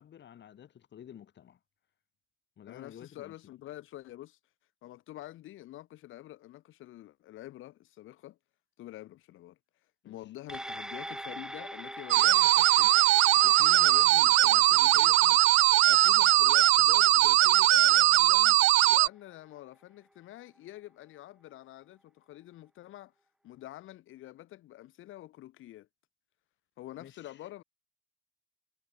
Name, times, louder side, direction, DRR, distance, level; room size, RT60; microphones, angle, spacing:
voice 1, 0.0-1.6 2.6-3.3 10.0-10.2 27.0-27.4, left 9 dB, 65° left, 7.2 m, -51 dB
voice 2, 2.7-4.4 4.8-8.4 8.8-9.6 10.0-18.6 18.9-23.1 23.4-25.9 26.8-27.6, left 15 dB, 85° left, 7.4 m, -47 dB
sound 1, 10.5-19.2 19.6-19.7, equal, 5° right, 5.1 m, -45 dB
sound 2, 12.1-19.1, right 17 dB, 80° right, 0.5 m, -21 dB
cardioid pair, 90°, 20 cm